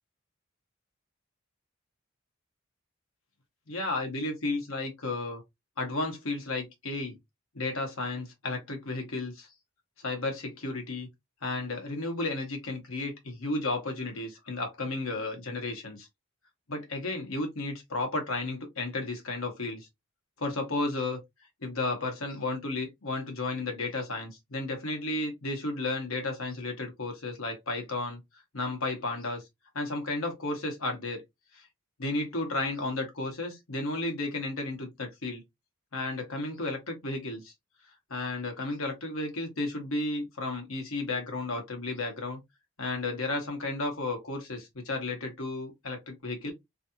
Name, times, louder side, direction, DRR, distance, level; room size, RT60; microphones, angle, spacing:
voice 1, 3.7-5.4 5.8-7.2 7.5-9.5 10.0-11.1 11.4-16.1 16.7-19.9 20.4-21.2 21.6-28.2 28.5-29.4 29.7-31.2 31.5-31.7 32.0-35.4 35.9-37.5 38.1-42.4 42.8-46.5, left 2 dB, 85° left, 1.4 m, -33 dB
3.2 x 2.8 x 2.7 m
head